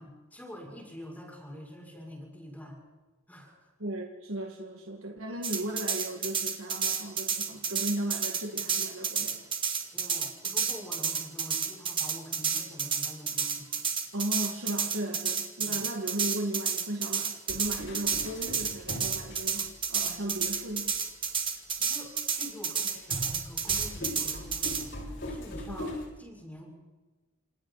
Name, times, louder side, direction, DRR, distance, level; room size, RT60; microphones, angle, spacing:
voice 1, 0.0-2.8 3.3-3.7 9.9-13.7 15.6-15.8 21.6-24.9 25.2-26.7, equal, 10° left, -2 dB, 6.4 m, -46 dB
voice 2, 3.8-9.5 14.1-21.0 25.7-26.0, right 1 dB, 70° right, 2 dB, 1.9 m, -36 dB
sound 1, 5.4-24.8, right 6 dB, 25° right, 2.2 m, -30 dB
sound 2, 17.5-20.0 20.7-20.8 23.1-26.1, left 1 dB, 55° left, 7.0 m, -39 dB
30.0 x 27.5 x 4.1 m, 1.2 s
head